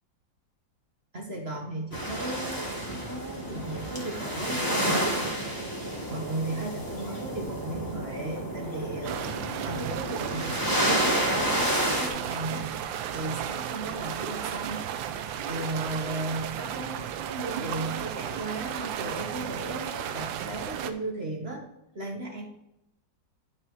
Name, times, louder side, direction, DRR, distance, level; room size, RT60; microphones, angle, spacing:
voice 1, 1.1-5.7 6.1-9.3 9.6-21.6 21.9-22.5, right 2 dB, 35° right, 0 dB, 1.7 m, -36 dB
sound 1, 1.9-12.1, right 1 dB, 10° left, 1.6 m, -30 dB
sound 2, 9.0-20.9, right 9 dB, 85° right, 1.4 m, -34 dB
10.5 x 4.8 x 4.7 m, 0.81 s
omnidirectional pair, 2.0 m